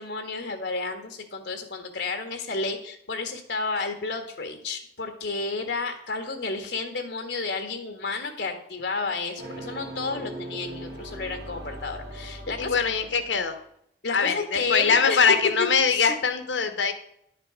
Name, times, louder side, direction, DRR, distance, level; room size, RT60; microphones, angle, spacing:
voice 1, 0.0-12.8 14.0-15.3 15.6-16.1, left 3 dB, 75° left, 6 dB, 1.7 m, -31 dB
sound 1, 9.4-13.5, right 1 dB, 65° right, 2.7 m, -39 dB
voice 2, 12.6-13.6 14.1-16.9, left 5 dB, 90° left, 9 dB, 1.0 m, -23 dB
10.5 x 6.6 x 5.1 m, 0.71 s
head